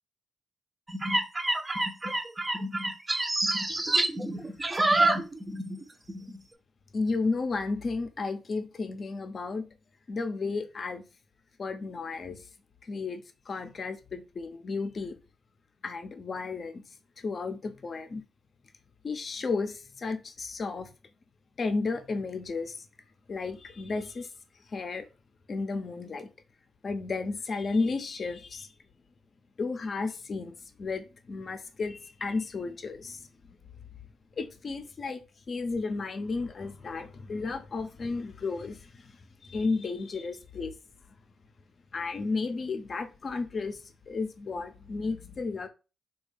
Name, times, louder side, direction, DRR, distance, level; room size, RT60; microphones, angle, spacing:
sound 1, 0.9-5.8 6.1-6.4, right 2 dB, 25° right, 0.5 m, -27 dB
voice 1, 6.9-9.7 10.1-11.0 11.6-12.5 12.8-15.1 15.8-16.8 17.2-18.2 19.0-20.9 21.6-22.9 23.3-24.3 24.7-25.1 25.5-26.3 26.8-28.7 29.6-33.6 34.3-35.2 35.5-40.7 41.9-45.7, left 4 dB, 50° left, 0.5 m, -33 dB
3.4 x 2.3 x 3.2 m
hypercardioid pair, 50°, 0 cm